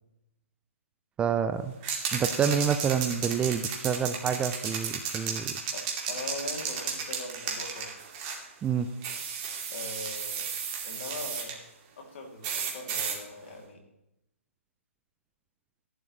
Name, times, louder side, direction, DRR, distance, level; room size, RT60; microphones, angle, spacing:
voice 1, 1.2-1.7 2.1-5.5 8.6-8.9, right 7 dB, 10° right, 10 dB, 0.4 m, -28 dB
sound 1, 1.8-8.4 9.0-11.5 12.4-13.2, right 6 dB, 30° right, 2.4 m, -34 dB
voice 2, 5.7-7.9 9.7-10.5 10.8-11.6 12.0-13.8, left 2 dB, 55° left, 2 dB, 3.1 m, -41 dB
15.0 x 11.0 x 3.3 m, 0.85 s
hypercardioid pair, 140°, 8 cm